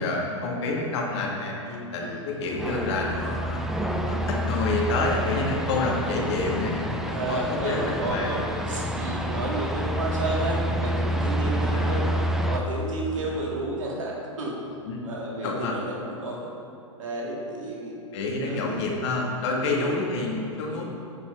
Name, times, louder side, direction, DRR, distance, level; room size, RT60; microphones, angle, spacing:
voice 1, 0.0-3.6 4.0-6.9 7.3-8.4 9.3-9.4 11.7-11.9 14.9-15.0 15.4-15.8 18.1-20.8, left 3 dB, 55° left, -1 dB, 2.0 m, -28 dB
sound 1, 2.5-12.6, equal, ahead, 0.6 m, -28 dB
voice 2, 7.1-12.0 12.4-14.6 15.0-16.5 17.0-18.0 18.5-18.8 19.6-19.9 20.7-20.8, right 2 dB, 75° right, -3 dB, 2.0 m, -31 dB
16.0 x 5.3 x 3.3 m, 2.5 s
hypercardioid pair, 105°, 17 cm